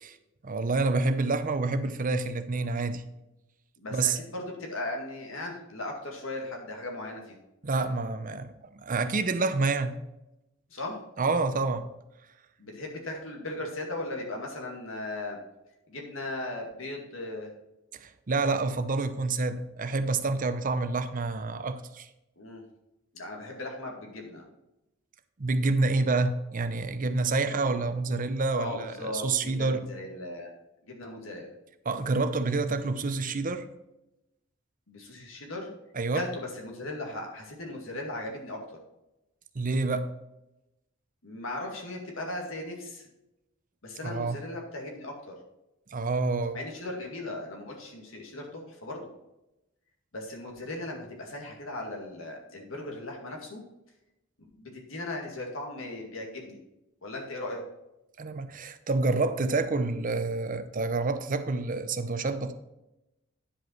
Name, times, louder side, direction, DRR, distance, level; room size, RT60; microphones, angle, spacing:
voice 1, 0.4-3.0 3.9-4.2 7.6-10.0 11.2-11.9 17.9-22.1 25.4-29.9 31.9-33.7 36.0-36.2 39.5-40.1 44.0-44.4 45.9-46.6 58.2-62.5, right 3 dB, 40° right, 0.7 m, -28 dB
voice 2, 3.8-7.4 10.7-11.0 12.6-15.4 15.9-17.5 22.4-22.6 23.1-24.5 27.5-27.7 28.6-30.5 30.8-31.5 34.9-35.7 36.1-38.8 41.2-43.1 43.8-45.4 46.5-49.1 50.1-53.6 54.4-56.6 57.0-57.6, left 2 dB, 80° left, 2.2 m, -37 dB
10.0 x 5.2 x 4.5 m
head